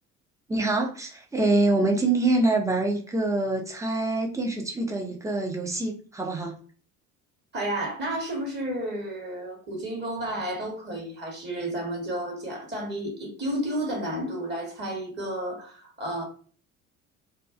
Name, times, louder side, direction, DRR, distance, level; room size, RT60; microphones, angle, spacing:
voice 1, 0.5-6.5, right 2 dB, 10° right, 0.5 m, -25 dB
voice 2, 7.5-16.2, right 1 dB, 25° right, 1.1 m, -32 dB
2.3 x 2.3 x 2.4 m
figure-of-eight pair, 60°, 41 cm